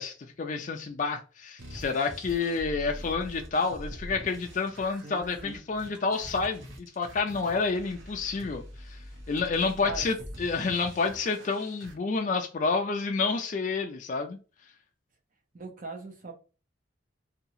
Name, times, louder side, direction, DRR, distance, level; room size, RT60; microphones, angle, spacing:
voice 1, 0.0-9.0 9.3-14.4, left 4 dB, 35° left, 0.3 m, -29 dB
sound 1, 1.6-11.9, equal, 70° right, 0.8 m, -44 dB
voice 2, 5.0-5.6 9.8-10.0 15.5-16.3, right 3 dB, 40° right, 0.6 m, -40 dB
2.8 x 2.3 x 2.6 m
head